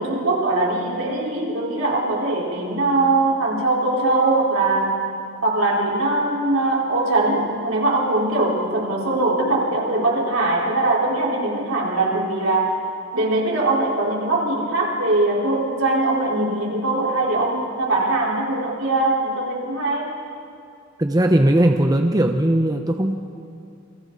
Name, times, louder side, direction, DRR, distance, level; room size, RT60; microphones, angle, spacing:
voice 1, 0.0-5.1 5.4-12.9 13.1-20.1, right 2 dB, 75° right, -3 dB, 4.5 m, -21 dB
voice 2, 21.0-23.2, right 1 dB, 20° right, 4 dB, 0.9 m, -18 dB
28.0 x 24.0 x 4.1 m, 2.5 s
head